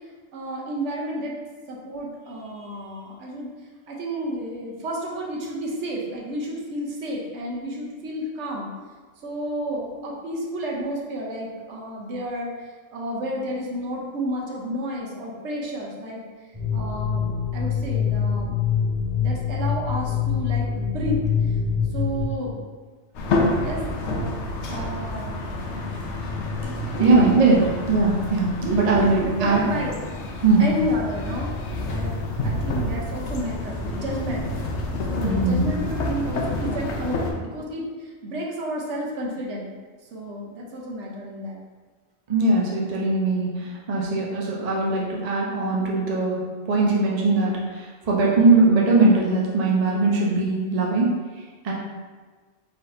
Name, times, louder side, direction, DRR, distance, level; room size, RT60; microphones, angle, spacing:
voice 1, 0.3-1.4 1.7-3.5 3.9-8.7 9.2-16.2 16.7-18.5 19.2-21.6 21.9-22.6 23.6-23.9 24.7-25.4 26.9-27.3 28.6-29.9 30.6-31.5 31.9-32.1 32.4-34.5 35.1-39.7 40.1-41.6, equal, 85° right, -2 dB, 1.1 m, -31 dB
sound 1, 16.5-22.2, left 7 dB, 20° right, 1.2 m, -24 dB
sound 2, 23.1-37.3, left 2 dB, 80° left, 0.9 m, -28 dB
voice 2, 27.0-27.6 27.9-29.6 30.4-30.6 35.2-35.6 42.3-51.1 51.6-51.7, right 3 dB, 40° right, -4 dB, 0.6 m, -20 dB
4.1 x 4.0 x 2.6 m, 1.4 s
omnidirectional pair, 1.2 m